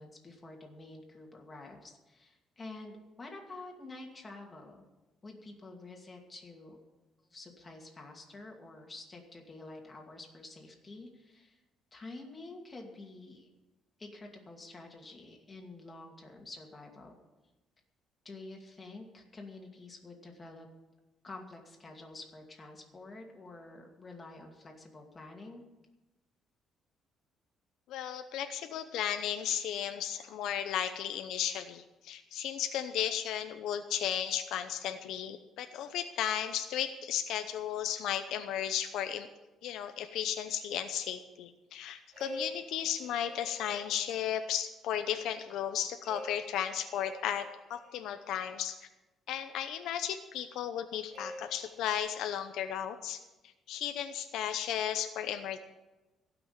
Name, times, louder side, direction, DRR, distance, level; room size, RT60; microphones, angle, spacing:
voice 1, 0.0-4.8 5.2-6.8 7.3-11.6 11.9-13.5 14.0-17.1 18.2-20.7 21.2-25.6, left 2 dB, 20° left, 1 dB, 2.4 m, -48 dB
voice 2, 27.9-39.3 39.6-48.8 49.3-53.2 53.7-55.6, left 10 dB, 80° left, 8 dB, 0.7 m, -34 dB
sound 1, 42.1-44.4 46.0-48.1 51.1-52.0, equal, 60° right, 3.7 m, -47 dB
16.0 x 6.1 x 8.7 m, 1.1 s
cardioid pair, 140°, 0 cm